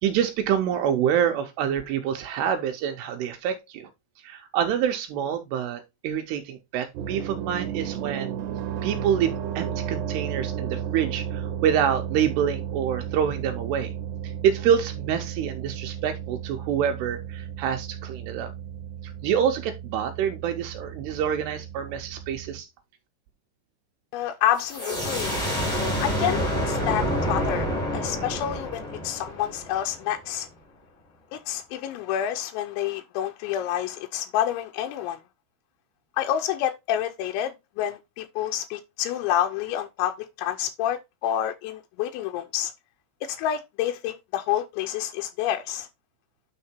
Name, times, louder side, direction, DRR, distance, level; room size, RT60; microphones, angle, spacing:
voice 1, 0.0-3.9 4.2-8.4 8.8-13.9 14.2-18.5 19.0-22.7, right 9 dB, 90° right, 2.3 m, -26 dB
sound 1, 6.9-22.6, right 9 dB, 70° right, 2.7 m, -34 dB
voice 2, 24.1-25.3 25.6-26.4 26.7-30.5 31.3-35.2 36.2-40.1 40.4-42.7 43.2-45.9, left 11 dB, 85° left, 2.9 m, -28 dB
sound 2, 24.6-30.1, equal, 25° left, 0.8 m, -28 dB
9.5 x 3.6 x 4.3 m
omnidirectional pair, 5.6 m